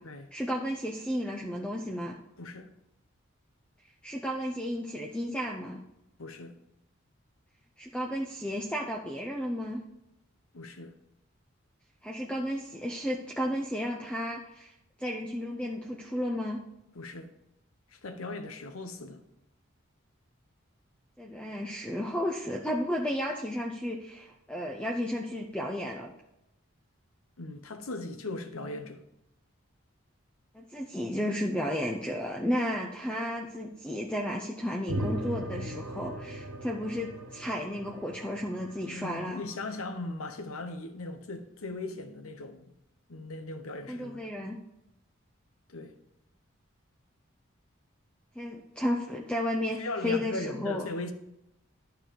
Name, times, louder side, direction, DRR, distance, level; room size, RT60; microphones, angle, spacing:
voice 1, 0.3-2.2 4.0-5.8 7.8-9.8 12.0-14.7 15.0-16.6 21.2-26.1 30.5-39.4 43.9-44.6 48.4-50.9, equal, 5° left, 0.5 m, -33 dB
voice 2, 2.4-2.7 6.2-6.6 10.5-10.9 16.9-17.3 17.9-19.2 27.4-29.0 38.9-42.7 43.1-44.3 45.7-45.9 49.8-51.1, left 2 dB, 85° left, 1.0 m, -38 dB
sound 1, 34.9-39.5, right 1 dB, 70° right, 1.3 m, -38 dB
11.5 x 4.6 x 5.2 m
head